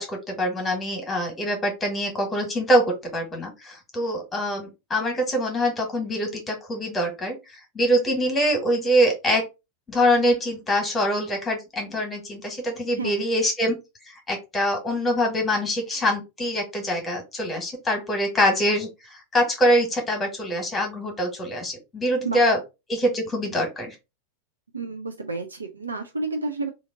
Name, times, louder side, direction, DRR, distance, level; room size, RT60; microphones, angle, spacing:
voice 1, 0.0-7.4 7.7-9.5 9.9-13.8 14.0-22.6 22.9-23.9, equal, 15° left, 1.4 m, -24 dB
voice 2, 24.7-26.7, right 3 dB, 75° right, 0.5 m, -30 dB
2.8 x 2.5 x 3.7 m
figure-of-eight pair, 90°, 0 cm